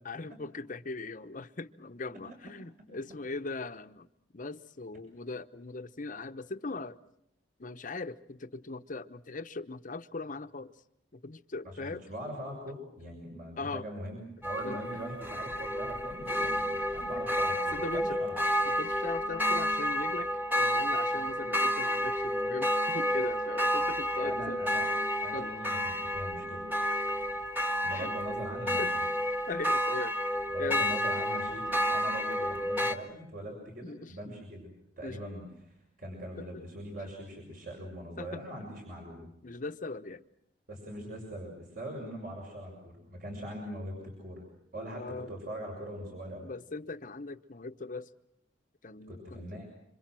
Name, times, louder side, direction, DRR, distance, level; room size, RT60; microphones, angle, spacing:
voice 1, 0.0-4.1 4.3-7.0 7.6-10.7 11.1-12.0 13.6-13.9 14.6-14.8 16.8-16.9 17.7-18.2 18.6-20.3 20.5-24.6 25.3-25.5 27.9-28.1 28.8-28.9 29.5-30.2 30.6-30.9 33.8-34.2 35.0-35.2 36.4-36.6 38.2-38.4 39.4-40.2 45.0-45.3 46.4-48.1 48.8-49.5, left 3 dB, 45° left, 0.9 m, -39 dB
voice 2, 11.6-18.4 24.2-24.9 25.2-26.7 27.8-29.0 30.5-34.7 35.0-39.3 40.7-44.4 44.7-46.5 49.1-49.7, right 1 dB, 50° right, 6.4 m, -42 dB
sound 1, 14.4-33.0, equal, 10° right, 1.7 m, -30 dB
27.0 x 26.0 x 6.2 m
head